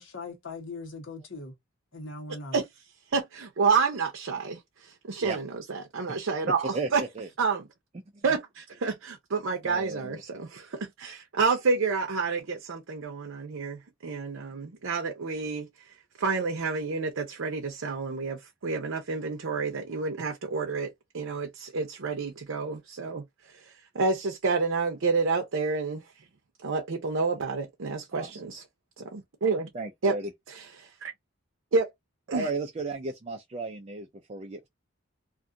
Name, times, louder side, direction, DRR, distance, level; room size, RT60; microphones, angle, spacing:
voice 1, 0.0-1.5 1.9-2.6, left 3 dB, 75° left, 1.1 m, -40 dB
voice 2, 3.1-7.0 7.4-7.7 8.2-15.7 16.2-23.2 23.6-26.0 26.6-28.6 29.0-29.7 30.0-30.2 30.5-31.1 31.7-31.9 32.3-32.5, right 4 dB, 80° right, 0.6 m, -29 dB
voice 3, 6.7-7.3 9.6-10.2 28.1-28.4 29.7-30.3 32.3-34.7, right 3 dB, 30° right, 0.4 m, -34 dB
2.5 x 2.4 x 2.5 m
head